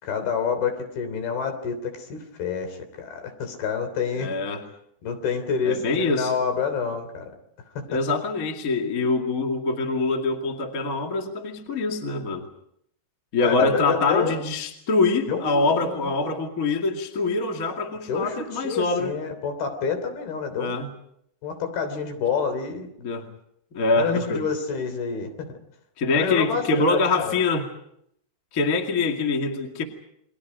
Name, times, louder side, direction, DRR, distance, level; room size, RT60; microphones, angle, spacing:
voice 1, 0.0-4.4 5.0-7.3 7.9-8.0 13.4-14.4 15.3-16.1 18.1-20.8 21.4-22.9 23.9-25.5 26.1-27.3, left 6 dB, 75° left, 7 dB, 5.2 m, -28 dB
voice 2, 4.2-4.7 5.6-6.3 7.9-12.5 13.3-19.1 20.6-20.9 23.0-23.3 23.7-24.4 26.0-27.7 28.5-29.8, left 3 dB, 30° left, 3 dB, 2.1 m, -24 dB
30.0 x 23.0 x 5.1 m, 0.73 s
omnidirectional pair, 4.5 m